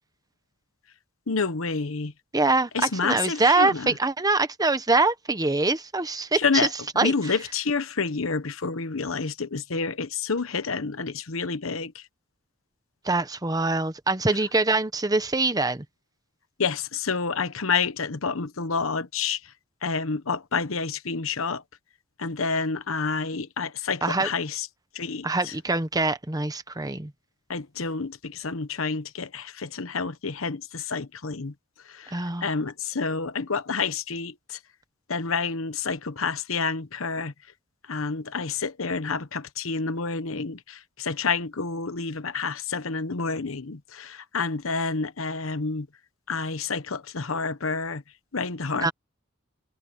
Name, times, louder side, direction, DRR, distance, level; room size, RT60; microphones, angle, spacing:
voice 1, 1.3-2.1 2.7-4.0 6.4-6.7 7.0-12.1 16.6-19.5 19.8-21.6 22.2-24.7 24.9-25.5 27.5-31.5 31.8-34.6 35.1-37.3 37.8-45.9 46.3-48.0 48.3-48.9, left 4 dB, 80° left, 1.1 m, -29 dB
voice 2, 2.3-6.7 7.0-7.1 13.0-15.8 24.0-24.3 25.2-27.1 32.1-32.5 48.8-48.9, right 3 dB, 20° right, 1.1 m, -24 dB
head